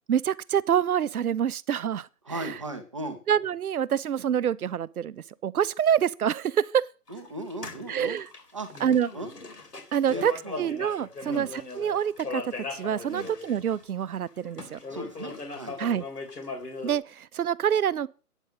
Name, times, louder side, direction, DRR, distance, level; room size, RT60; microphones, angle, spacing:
voice 1, 0.1-2.1 2.3-2.5 3.3-6.9 7.9-8.3 8.8-9.1 9.9-10.3 10.6-14.8 15.8-16.0 16.8-18.1, right 9 dB, 70° right, 0.6 m, -26 dB
voice 2, 2.2-3.2 7.1-8.2 8.5-8.7 9.1-9.3 10.1-10.7 11.2-11.5 13.1-13.3 14.9-15.8, right 1 dB, 20° right, 0.7 m, -37 dB
sound 1, 7.1-14.0 14.4-17.0, left 3 dB, 80° left, 3.1 m, -39 dB
9.0 x 5.3 x 7.2 m
hypercardioid pair, 160°, 46 cm